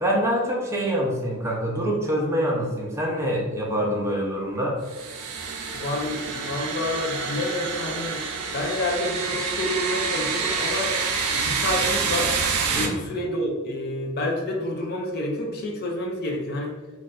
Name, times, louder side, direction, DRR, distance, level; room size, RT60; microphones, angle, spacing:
voice 1, 0.0-4.8 12.7-13.0, equal, 10° right, -2 dB, 0.5 m, -25 dB
sound 1, 4.9-12.9, right 5 dB, 85° right, 0.5 m, -27 dB
voice 2, 5.7-8.2 8.5-10.9 11.3-12.4 12.7-16.7, left 1 dB, 45° left, 1 dB, 0.5 m, -28 dB
2.4 x 2.3 x 4.0 m, 1.3 s
head